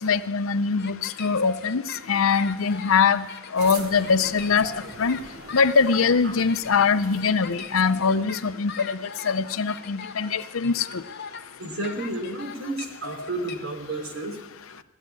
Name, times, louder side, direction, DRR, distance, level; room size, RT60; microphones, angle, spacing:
voice 1, 0.0-1.8 2.1-3.3 3.5-4.7 5.0-5.2 5.5-9.0 9.2-11.0, left 5 dB, 80° left, 12 dB, 0.7 m, -22 dB
sound 1, 0.8-13.5, left 6 dB, 50° left, 1.0 m, -40 dB
sound 2, 3.6-8.4, right 3 dB, 50° right, 1.3 m, -43 dB
voice 2, 11.6-14.4, right 2 dB, 90° right, 2 dB, 3.2 m, -31 dB
17.0 x 7.4 x 9.7 m, 1.0 s
head